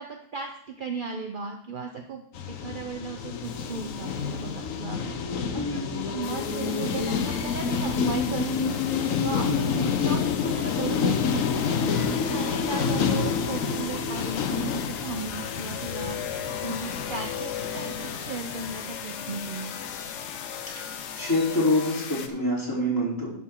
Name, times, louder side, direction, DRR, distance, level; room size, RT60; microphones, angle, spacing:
voice 1, 0.0-5.2 5.5-8.7 9.2-16.2 16.6-19.7, right 4 dB, 50° right, 3 dB, 0.6 m, -36 dB
sound 1, 2.3-19.7 19.9-20.2 20.6-20.7 20.8-21.0 21.3-21.4, left 6 dB, 60° left, 1.1 m, -29 dB
voice 2, 5.5-5.9 9.5-9.8 21.2-23.3, left 1 dB, 10° left, -6 dB, 3.5 m, -26 dB
sound 2, 6.2-22.3, left 8 dB, 75° left, 1.3 m, -37 dB
11.0 x 6.8 x 3.7 m, 0.68 s
omnidirectional pair, 1.8 m